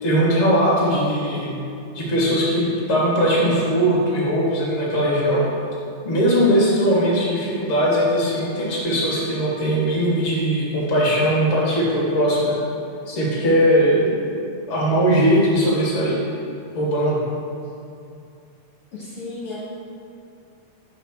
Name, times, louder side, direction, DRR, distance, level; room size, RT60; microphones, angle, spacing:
voice 1, 0.0-1.5 1.9-5.4 6.0-12.6 13.1-14.1 14.7-16.2 16.7-17.2, equal, 25° left, -6 dB, 1.9 m, -19 dB
voice 2, 18.9-19.6, left 3 dB, 55° left, -8 dB, 2.2 m, -33 dB
6.1 x 5.7 x 7.1 m, 2.5 s
omnidirectional pair, 4.0 m